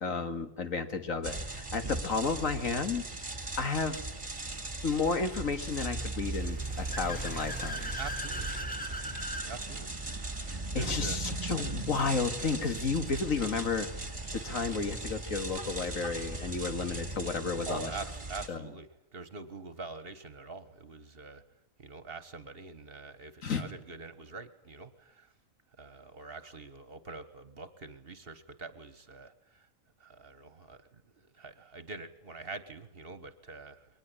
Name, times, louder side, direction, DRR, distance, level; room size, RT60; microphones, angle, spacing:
voice 1, 0.0-3.1 3.6-4.0 4.8-8.0 10.4-13.9 14.3-17.9 18.5-18.7 23.4-23.6, left 4 dB, 75° left, 8 dB, 2.2 m, -32 dB
sound 1, 1.2-18.5, right 2 dB, 25° right, 2.1 m, -38 dB
Car / Accelerating revving vroom, 6.3-9.5, equal, 5° left, 1.4 m, -40 dB
voice 2, 8.0-8.5 9.4-9.9 10.4-11.2 17.6-21.4 21.8-25.3 25.8-29.7 30.0-33.9, right 3 dB, 45° right, 13 dB, 1.6 m, -45 dB
22.5 x 19.5 x 9.9 m, 0.78 s
omnidirectional pair, 1.4 m